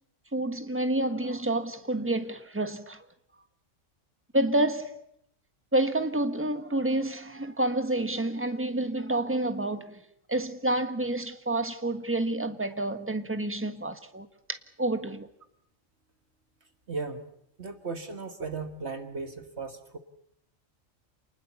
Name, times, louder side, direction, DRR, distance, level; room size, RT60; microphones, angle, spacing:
voice 1, 0.3-3.0 4.3-5.0 5.7-10.0 10.3-14.3 14.8-15.3, right 1 dB, 10° right, 1.5 m, -28 dB
voice 2, 16.9-17.3 17.6-20.0, right 4 dB, 55° right, 1.8 m, -36 dB
28.0 x 20.0 x 7.1 m
omnidirectional pair, 1.3 m